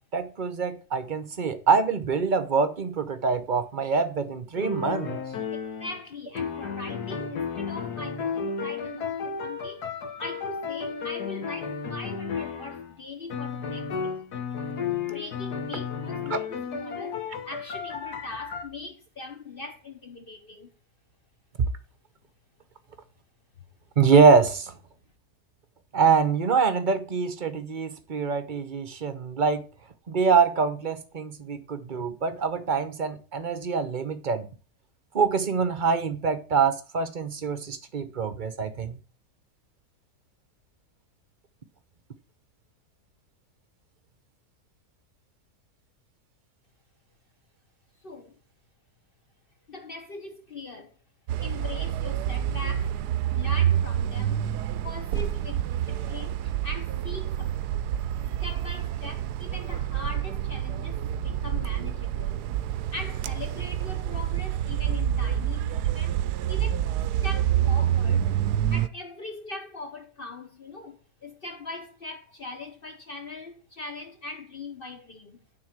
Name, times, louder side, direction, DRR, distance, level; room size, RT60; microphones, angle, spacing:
voice 1, 0.1-5.2 16.3-16.4 24.0-24.7 25.9-29.7 30.1-34.4 35.1-39.0, right 5 dB, 40° right, 0.7 m, -24 dB
sound 1, 4.6-6.0 6.4-12.9 13.3-18.6, left 6 dB, 75° left, 1.8 m, -33 dB
voice 2, 5.8-9.8 10.2-14.5 15.0-17.2 17.4-20.7 48.0-48.4 49.7-50.9 51.4-52.9 53.3-54.4 54.8-57.9 58.2-61.0 61.2-62.4 62.9-66.2 66.5-68.3 68.7-75.4, left 2 dB, 45° left, 0.9 m, -41 dB
sound 2, 51.3-68.9, right 10 dB, 85° right, 1.1 m, -27 dB
9.4 x 4.0 x 7.3 m
omnidirectional pair, 1.7 m